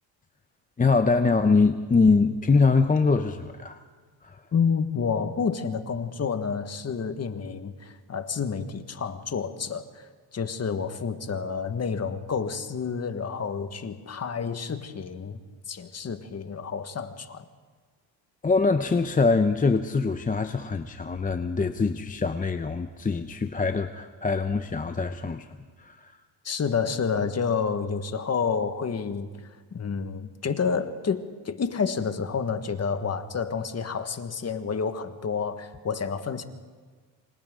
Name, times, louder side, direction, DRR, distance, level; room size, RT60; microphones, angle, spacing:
voice 1, 0.8-3.8 4.2-4.4 18.4-25.5 25.8-26.1, left 4 dB, 20° left, 8 dB, 0.8 m, -23 dB
voice 2, 4.5-15.4 15.7-17.5 26.4-29.3 29.7-36.4, left 6 dB, 35° left, 9 dB, 1.6 m, -29 dB
27.0 x 25.0 x 3.8 m, 1.5 s
cardioid pair, 95°, 42 cm